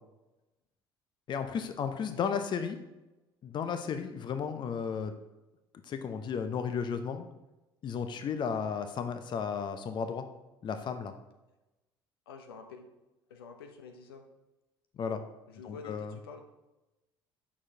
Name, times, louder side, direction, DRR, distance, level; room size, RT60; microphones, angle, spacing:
voice 1, 1.3-2.8 3.4-5.1 5.8-7.3 7.8-10.2 10.6-11.1 15.0-15.2 15.6-16.1, left 6 dB, 35° left, 8 dB, 0.7 m, -34 dB
voice 2, 12.3-12.9 13.3-14.3 15.5-16.4, left 5 dB, 70° left, 5 dB, 0.7 m, -48 dB
8.4 x 6.2 x 2.8 m, 1.0 s
figure-of-eight pair, 55°, 13 cm